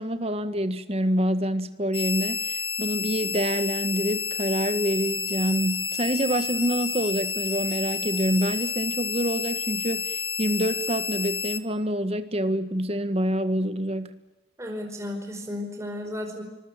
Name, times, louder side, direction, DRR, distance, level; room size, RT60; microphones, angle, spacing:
voice 1, 0.0-14.2, equal, 35° right, 10 dB, 1.6 m, -27 dB
sound 1, 1.9-11.6, left 5 dB, 30° left, 1.6 m, -30 dB
voice 2, 14.6-16.4, left 1 dB, 15° right, 3 dB, 4.8 m, -34 dB
26.0 x 21.5 x 9.0 m, 1.0 s
head